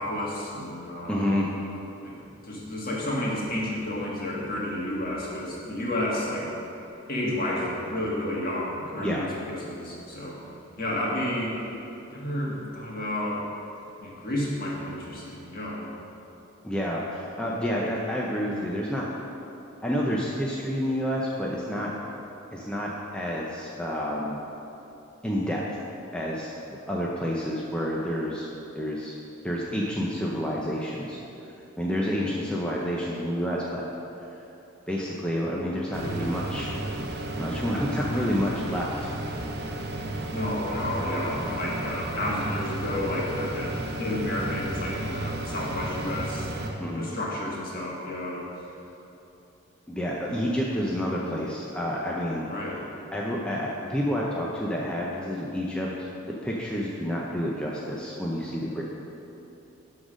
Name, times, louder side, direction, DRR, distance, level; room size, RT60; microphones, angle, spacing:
voice 1, 0.0-1.2 2.0-2.1 2.4-6.5 7.1-10.4 10.8-11.6 12.1-13.4 14.0-15.9 40.3-46.7 46.9-48.4 52.4-52.8, left 1 dB, 45° left, -4 dB, 1.7 m, -31 dB
voice 2, 1.1-1.5 9.0-9.3 16.6-19.1 19.8-21.9 22.5-24.4 25.2-25.6 26.1-26.5 26.9-28.5 28.7-29.2 29.4-31.2 31.8-33.8 34.9-36.7 37.4-39.1 46.8-47.1 49.9-52.4 53.1-58.8, equal, 5° left, -4 dB, 0.6 m, -29 dB
sound 1, 35.9-46.7, right 1 dB, 50° right, 0.8 m, -33 dB
11.5 x 3.9 x 6.2 m, 3.0 s
head